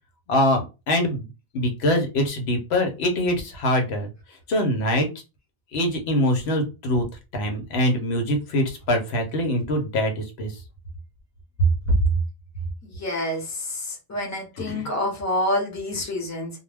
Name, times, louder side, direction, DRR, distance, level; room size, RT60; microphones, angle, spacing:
voice 1, 0.3-0.6 0.9-1.3 1.5-4.1 4.5-5.1 5.7-7.0 7.3-10.6 11.9-12.0 14.6-14.9, left 1 dB, 85° left, 4 dB, 1.0 m, -23 dB
voice 2, 12.8-16.5, left 1 dB, 15° left, 0 dB, 0.8 m, -28 dB
2.2 x 2.2 x 3.3 m, 0.28 s
omnidirectional pair, 1.1 m